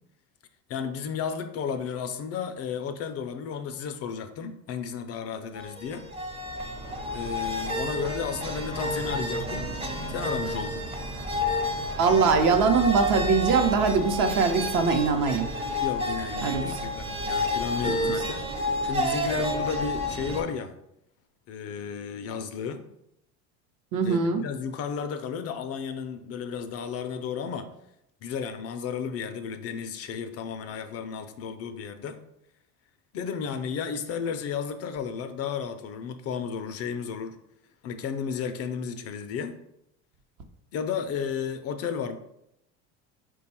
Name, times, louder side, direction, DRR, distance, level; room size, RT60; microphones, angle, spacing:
voice 1, 0.7-6.1 7.1-9.7 10.1-10.8 15.8-20.7 21.5-22.8 24.0-27.7 28.2-32.2 33.1-37.4 37.8-39.5 40.7-42.2, left 6 dB, 45° left, 9 dB, 0.4 m, -33 dB
sound 1, 5.5-20.4, left 1 dB, 15° right, 0.6 m, -30 dB
voice 2, 12.0-15.5 16.4-16.9 17.8-18.2 23.9-24.4, right 5 dB, 55° right, 5 dB, 0.8 m, -23 dB
4.5 x 2.3 x 4.2 m, 0.79 s
supercardioid pair, 105°, 36 cm